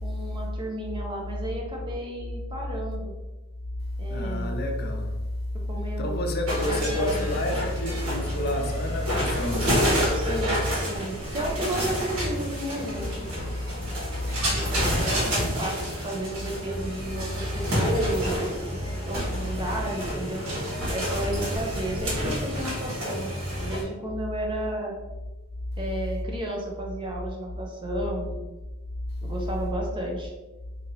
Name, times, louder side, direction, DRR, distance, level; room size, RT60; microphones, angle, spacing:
voice 1, 0.0-3.1 4.0-4.6 5.7-6.2 6.7-7.2 10.1-13.4 14.4-18.8 19.0-20.4 20.9-23.3 23.6-24.9 25.8-28.4 29.2-30.3, right 1 dB, 25° right, 0.6 m, -33 dB
voice 2, 4.1-5.1 6.0-9.8, left 1 dB, 50° left, 0.5 m, -28 dB
sound 1, 6.5-23.8, equal, 80° right, 1.5 m, -29 dB
2.8 x 2.7 x 4.0 m
head